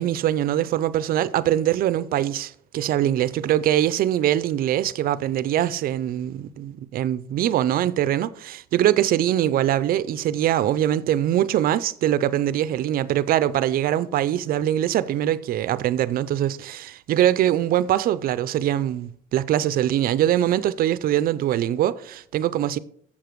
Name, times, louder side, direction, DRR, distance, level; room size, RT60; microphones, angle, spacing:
voice 1, 0.0-22.8, right 12 dB, 60° right, 0.5 m, -23 dB
7.2 x 6.8 x 4.6 m
cardioid pair, 110°, 17 cm